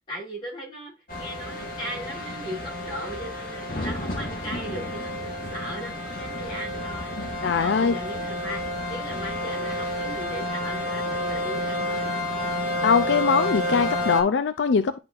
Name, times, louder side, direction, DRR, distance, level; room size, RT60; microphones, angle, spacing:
voice 1, 0.1-7.2 7.5-12.2, equal, 25° left, 3.7 m, -38 dB
sound 1, 1.1-14.2, left 1 dB, 50° left, 1.6 m, -30 dB
voice 2, 7.4-7.9 12.8-15.0, left 5 dB, 80° left, 0.5 m, -22 dB
10.5 x 4.3 x 2.6 m
head